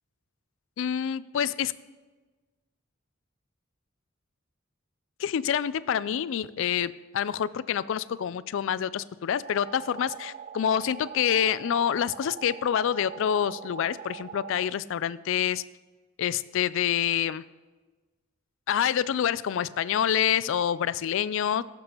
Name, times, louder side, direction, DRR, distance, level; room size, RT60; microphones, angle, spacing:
voice 1, 0.8-1.7 5.2-15.6 16.2-17.4 18.7-21.6, left 9 dB, 70° left, 18 dB, 0.3 m, -27 dB
sound 1, 9.4-14.7, right 8 dB, 40° right, 0.3 m, -42 dB
17.5 x 6.9 x 3.0 m, 1.3 s
head